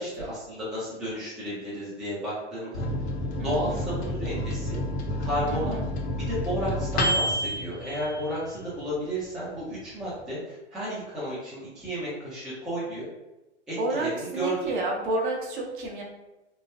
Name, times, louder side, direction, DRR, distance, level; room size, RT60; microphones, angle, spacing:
voice 1, 0.0-2.8 3.4-4.8 5.2-5.8 6.2-13.0 13.7-14.8, equal, ahead, -9 dB, 0.4 m, -32 dB
Microwave oven, 2.7-8.8 9.2-9.3 9.6-10.2, left 1 dB, 60° left, 0.7 m, -30 dB
voice 2, 3.4-3.8 5.4-5.9 13.8-16.0, right 2 dB, 45° right, 0 dB, 0.7 m, -30 dB
3.1 x 2.1 x 2.2 m, 1.0 s
figure-of-eight pair, 115°, 35 cm